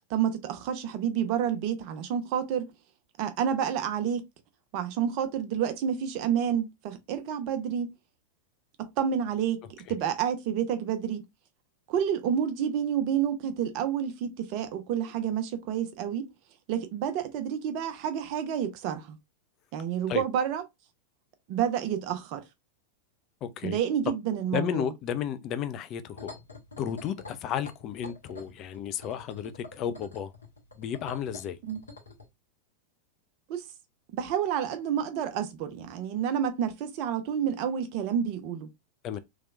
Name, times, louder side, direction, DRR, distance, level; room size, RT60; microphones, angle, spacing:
voice 1, 0.1-2.7 3.2-4.2 4.7-7.9 8.8-9.6 9.9-11.2 11.9-16.3 16.7-19.2 19.7-20.6 21.5-22.4 23.6-24.9 31.6-31.8 33.5-33.6 34.1-38.7, right 9 dB, 45° right, 0.7 m, -29 dB
voice 2, 23.4-23.8 24.5-26.4 26.8-30.3 30.8-31.6 39.0-39.2, left 9 dB, 35° left, 0.4 m, -33 dB
sound 1, 26.1-32.3, left 3 dB, 75° left, 1.1 m, -46 dB
3.2 x 2.9 x 2.4 m
figure-of-eight pair, 90°, 0 cm